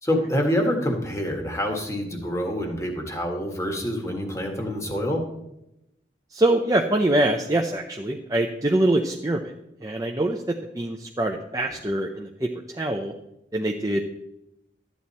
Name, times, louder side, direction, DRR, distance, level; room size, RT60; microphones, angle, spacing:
voice 1, 0.0-5.2, equal, 15° left, 2 dB, 1.7 m, -26 dB
voice 2, 6.3-9.5 9.8-12.5 12.8-13.1 13.5-14.0, right 1 dB, 20° right, 2 dB, 0.6 m, -24 dB
13.0 x 9.2 x 4.2 m, 0.86 s
head